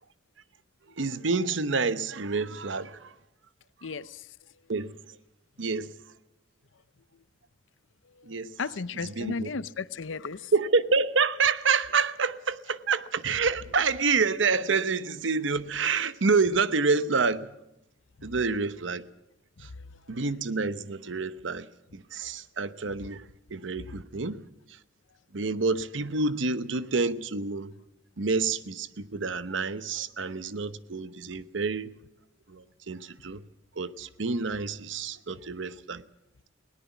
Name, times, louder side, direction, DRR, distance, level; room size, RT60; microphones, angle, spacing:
voice 1, 1.0-3.2 4.7-5.2 5.6-6.0 8.2-8.5 8.9-9.5 10.5-17.5 18.2-19.1 19.6-19.7 20.1-24.8 25.3-27.7 28.2-32.0 32.5-33.4 33.8-36.0, right 4 dB, 75° right, 0.9 m, -28 dB
voice 2, 3.8-4.3 8.2-10.5 18.2-18.3 19.6-19.7, left 4 dB, 85° left, 0.7 m, -35 dB
20.0 x 18.0 x 7.2 m
head